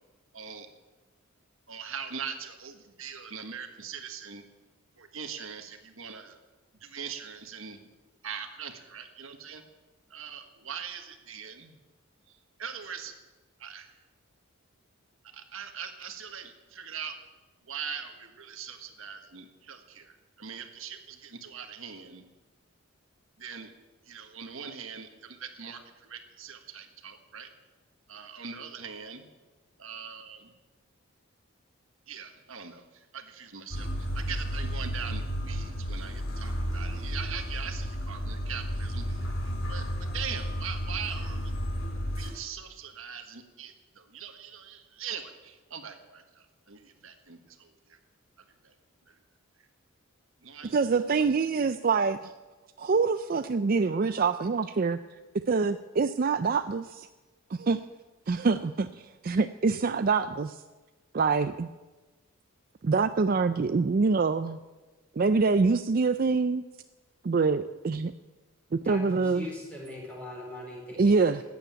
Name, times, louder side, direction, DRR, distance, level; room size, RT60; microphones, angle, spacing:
voice 1, 0.3-0.7 1.7-4.5 5.0-6.4 6.8-7.9 8.2-9.6 10.1-11.7 12.3-13.1 13.6-13.9 15.3-17.2 17.6-22.3 23.4-23.7 24.1-27.5 28.1-29.3 29.8-30.5 32.1-41.5 42.1-48.0 48.6-48.7 49.1-49.2 50.4-50.8 51.1-51.2, right 7 dB, 70° right, 6 dB, 1.5 m, -41 dB
sound 1, 33.7-42.3, equal, 70° left, 3.4 m, -32 dB
voice 2, 50.7-52.3 52.8-55.0 55.5-57.1 57.5-57.8 58.3-60.6 61.1-61.7 62.8-64.6 65.2-66.6 67.2-68.1 68.7-69.5 71.0-71.4, right 4 dB, 40° right, 11 dB, 0.4 m, -25 dB
voice 3, 68.8-71.1, left 2 dB, 5° left, -1 dB, 4.1 m, -41 dB
15.0 x 9.4 x 9.1 m, 1.2 s
head